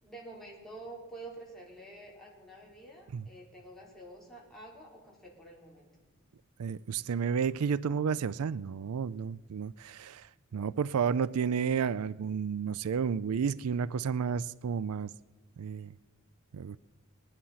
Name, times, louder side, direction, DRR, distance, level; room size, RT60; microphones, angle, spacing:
voice 1, 0.0-5.9, right 2 dB, ahead, 4.0 m, -48 dB
voice 2, 6.6-10.3 10.5-15.1 15.6-15.9 16.5-16.8, right 6 dB, 90° right, 0.4 m, -31 dB
20.0 x 11.0 x 5.7 m
head